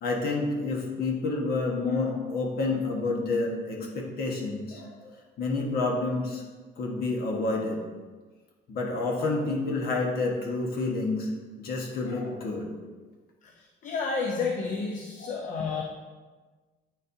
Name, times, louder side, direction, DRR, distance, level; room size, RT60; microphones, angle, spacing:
voice 1, 0.0-6.4 6.8-7.8 8.7-11.3 11.6-12.7 15.2-15.5, left 3 dB, 65° left, 0 dB, 1.4 m, -29 dB
voice 2, 13.4-15.8, left 4 dB, 50° left, 1 dB, 0.7 m, -31 dB
8.9 x 4.2 x 2.7 m, 1.3 s
cardioid pair, 110°, 17 cm